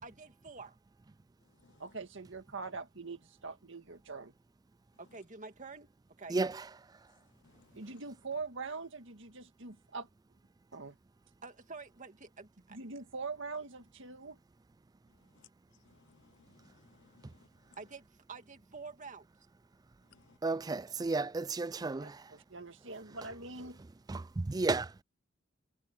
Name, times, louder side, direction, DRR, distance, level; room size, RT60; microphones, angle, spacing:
voice 1, 0.0-0.8 5.0-5.9 6.2-6.4 11.4-12.8 17.8-19.3, right 4 dB, 40° right, 2.1 m, -48 dB
voice 2, 1.8-4.3 7.7-10.1 10.7-11.0 12.7-14.4 22.0-23.8, right 4 dB, 65° right, 1.9 m, -43 dB
voice 3, 7.4-8.0 15.3-15.5 15.8-17.5 20.1-20.2, left 5 dB, 60° left, 0.8 m, -64 dB
voice 4, 20.4-22.2 24.1-24.9, right 3 dB, 20° right, 0.4 m, -32 dB
head